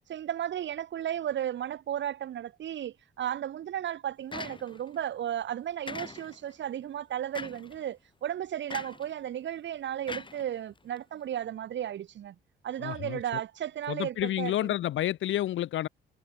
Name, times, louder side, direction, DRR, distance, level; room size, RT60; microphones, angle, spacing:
voice 1, 0.1-12.4 12.6-14.7, right 10 dB, 65° right, 2.5 m, -34 dB
sound 1, 4.3-5.0 5.9-6.5 7.3-7.8 8.7-9.1 10.1-11.0, left 4 dB, 25° left, 2.5 m, -41 dB
voice 2, 12.8-13.2 13.9-15.9, left 13 dB, 75° left, 1.7 m, -30 dB
cardioid pair, 90°, 20 cm